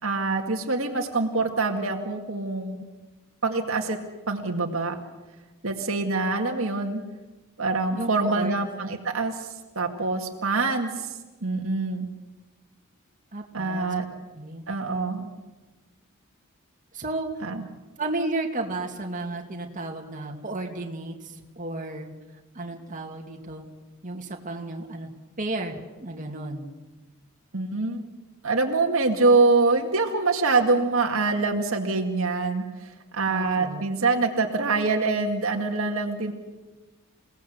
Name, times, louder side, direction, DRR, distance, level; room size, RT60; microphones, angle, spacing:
voice 1, 0.0-2.9 3.4-4.0 4.3-5.0 5.6-7.0 7.6-12.1 13.5-14.0 14.7-15.3 17.4-17.6 27.5-28.0 28.4-36.3, right 3 dB, 70° right, 3 dB, 2.1 m, -25 dB
voice 2, 7.9-8.5 13.3-14.6 16.9-17.5 18.0-22.1 22.5-23.6 24.0-25.1 25.4-26.7 33.3-33.8, right 2 dB, 40° right, 2 dB, 2.5 m, -33 dB
28.5 x 18.0 x 8.0 m, 1.2 s
head